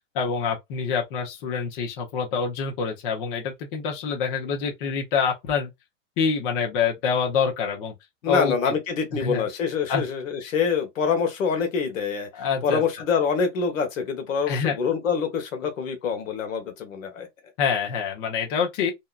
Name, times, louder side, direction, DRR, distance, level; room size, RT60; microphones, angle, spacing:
voice 1, 0.1-5.7 6.2-7.9 8.3-8.7 9.1-9.5 9.9-10.0 12.3-12.8 14.5-14.8 17.6-18.9, left 6 dB, 45° left, 0.8 m, -26 dB
voice 2, 8.2-17.3, left 6 dB, 85° left, 1.0 m, -25 dB
2.7 x 2.3 x 2.3 m
hypercardioid pair, 140°, 38 cm